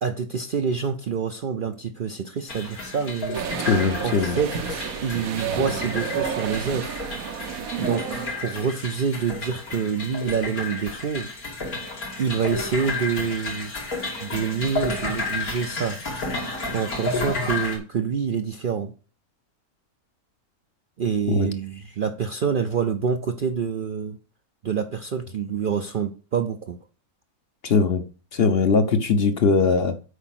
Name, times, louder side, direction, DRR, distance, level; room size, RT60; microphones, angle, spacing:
voice 1, 0.0-3.4 4.0-7.1 7.8-11.3 12.2-13.7 14.2-16.0 16.7-18.9 21.0-24.2 24.6-26.8, right 6 dB, 60° right, 0.6 m, -27 dB
sound 1, 2.5-17.8, left 3 dB, 85° left, 2.9 m, -32 dB
sound 2, 3.3-8.4, right 7 dB, 75° right, 1.2 m, -31 dB
voice 2, 3.7-4.4 21.3-21.5 27.6-28.0 28.3-29.9, left 4 dB, 50° left, 0.9 m, -20 dB
8.2 x 5.0 x 5.9 m
omnidirectional pair, 1.5 m